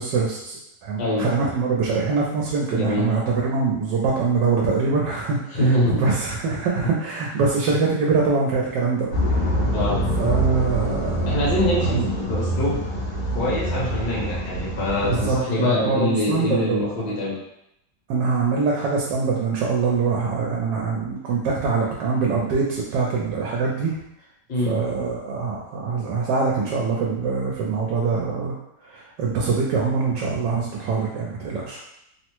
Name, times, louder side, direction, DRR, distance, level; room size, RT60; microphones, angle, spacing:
voice 1, 0.0-9.6 10.2-11.3 11.8-12.1 15.0-17.1 18.1-24.0 24.6-28.5 28.9-31.8, right 4 dB, 80° right, -2 dB, 1.2 m, -24 dB
voice 2, 2.7-3.1 5.5-6.0 9.7-10.0 11.3-12.8 13.3-17.3 24.5-24.8, left 1 dB, 70° left, -6 dB, 1.5 m, -24 dB
sound 1, 9.1-15.4, right 1 dB, 90° left, 1.4 m, -25 dB
3.4 x 2.0 x 2.9 m, 0.82 s
omnidirectional pair, 1.8 m